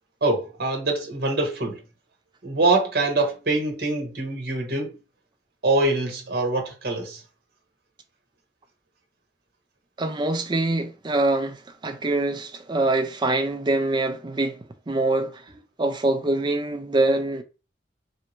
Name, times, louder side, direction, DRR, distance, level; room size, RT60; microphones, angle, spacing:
voice 1, 0.2-1.8 2.4-5.0 5.6-7.2, right 2 dB, 60° right, 1.0 m, -24 dB
voice 2, 10.0-15.5 15.8-17.4, right 2 dB, 25° right, 0.4 m, -24 dB
3.2 x 2.7 x 2.9 m
head